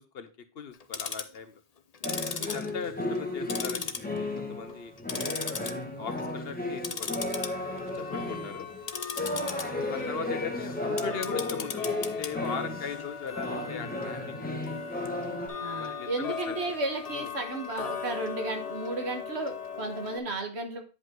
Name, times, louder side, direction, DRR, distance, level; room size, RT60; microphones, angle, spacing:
voice 1, 0.0-1.6 2.4-4.9 5.5-7.1 7.9-8.7 9.4-11.8 12.2-14.3 14.6-14.7 15.5-16.6 17.1-17.3, left 6 dB, 65° left, 10 dB, 1.1 m, -39 dB
Tick-tock, 0.7-1.4 1.9-3.2 3.5-4.4 4.7-5.7 6.1-6.3 6.8-20.2, left 6 dB, 40° left, 0.7 m, -38 dB
sound 1, 2.0-13.1 13.3-15.5, left 2 dB, 10° left, 1.5 m, -34 dB
voice 2, 2.4-2.8 8.2-8.5 15.6-20.8, right 2 dB, 80° right, 5 dB, 1.7 m, -34 dB
9.5 x 5.3 x 3.7 m, 0.33 s
omnidirectional pair, 1.1 m